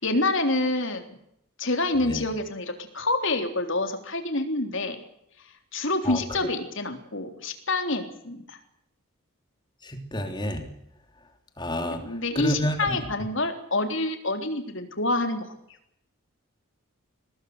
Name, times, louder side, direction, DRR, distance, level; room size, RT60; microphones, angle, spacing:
voice 1, 0.0-1.2 1.6-5.0 5.7-8.6 11.9-15.5, left 2 dB, 55° left, 6 dB, 3.6 m, -27 dB
voice 2, 9.8-10.6 11.6-12.0 12.3-13.0, equal, 20° left, 6 dB, 3.1 m, -29 dB
24.0 x 18.0 x 8.0 m, 0.77 s
head